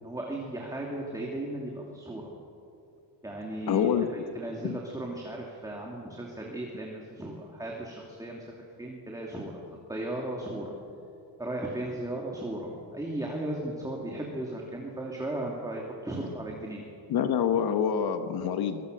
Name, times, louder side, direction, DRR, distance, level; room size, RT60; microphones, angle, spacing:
voice 1, 0.0-2.3 3.2-9.6 9.9-10.7 11.4-16.8, right 1 dB, 10° right, -1 dB, 2.8 m, -36 dB
voice 2, 3.7-4.1 4.6-4.8 17.1-18.8, left 8 dB, 55° left, 8 dB, 1.5 m, -26 dB
24.5 x 24.0 x 6.7 m, 2.6 s
cardioid pair, 150°, 45 cm